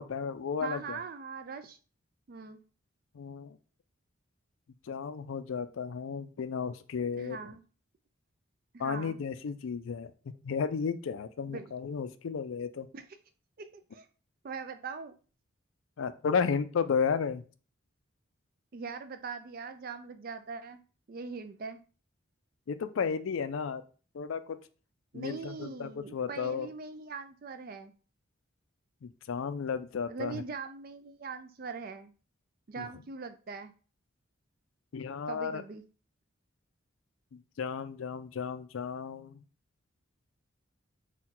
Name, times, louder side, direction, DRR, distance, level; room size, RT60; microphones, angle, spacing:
voice 1, 0.0-1.0 3.1-3.6 4.9-7.4 8.8-10.1 10.4-12.9 16.0-17.4 22.7-23.8 24.1-24.6 25.1-26.7 29.0-30.4 32.8-32.9 34.9-35.6 37.3-39.4, left 6 dB, 75° left, 12 dB, 0.4 m, -33 dB
voice 2, 0.6-1.8 2.3-2.6 7.2-7.6 8.7-9.2 11.5-11.7 12.9-13.0 13.6-14.1 14.4-15.1 18.7-20.8 21.1-21.8 25.1-27.9 30.1-32.1 32.7-33.7 35.3-35.8, right 5 dB, 45° right, 10 dB, 0.4 m, -41 dB
4.4 x 2.3 x 3.8 m, 0.37 s
head